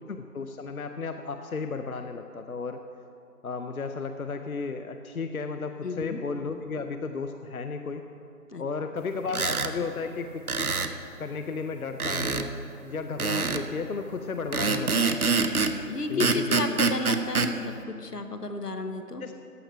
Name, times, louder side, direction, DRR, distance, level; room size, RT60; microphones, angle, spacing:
voice 1, 0.1-2.8 3.4-8.1 8.6-10.8 11.2-15.6 16.1-16.8 19.2-19.3, left 4 dB, 65° left, 7 dB, 0.6 m, -34 dB
voice 2, 5.8-6.2 8.5-8.6 9.8-9.9 15.9-19.2, left 3 dB, 85° left, 7 dB, 1.1 m, -32 dB
sound 1, 9.3-9.7 10.5-10.9 12.0-12.5 13.2-13.7 14.5-15.8 16.2-17.5, right 4 dB, 65° right, 0.8 m, -25 dB
14.5 x 9.8 x 3.2 m, 2.7 s
figure-of-eight pair, 165°, 46 cm